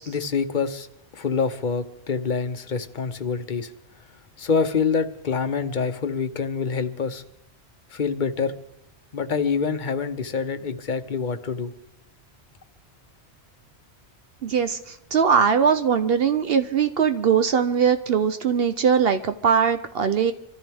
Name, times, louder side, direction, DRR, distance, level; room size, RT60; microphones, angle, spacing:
voice 1, 0.1-0.9 1.1-3.7 4.4-7.2 7.9-8.5 9.1-11.7, left 5 dB, 50° left, 10 dB, 0.9 m, -26 dB
voice 2, 14.4-20.3, right 7 dB, 65° right, 8 dB, 0.9 m, -21 dB
26.0 x 14.0 x 3.5 m, 0.80 s
omnidirectional pair, 1.1 m